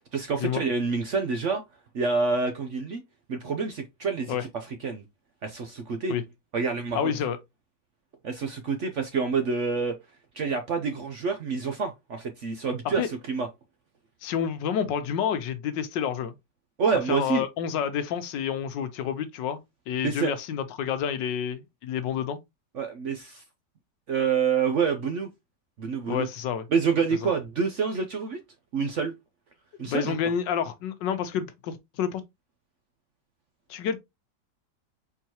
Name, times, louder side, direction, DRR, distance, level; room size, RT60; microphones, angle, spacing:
voice 1, 0.1-1.6 1.9-3.0 3.3-5.0 5.4-6.1 6.5-7.1 8.2-10.0 10.3-13.5 16.8-17.4 20.0-20.3 22.7-23.4 24.1-25.3 25.8-26.3 26.7-28.4 28.7-29.1 29.8-30.1, right 5 dB, 60° right, 0.8 m, -27 dB
voice 2, 6.9-7.4 13.0-13.1 14.2-16.3 17.1-19.6 19.9-22.4 26.1-26.7 29.8-32.2 33.7-34.0, left 8 dB, 90° left, 1.4 m, -29 dB
4.6 x 3.9 x 2.9 m
omnidirectional pair, 1.9 m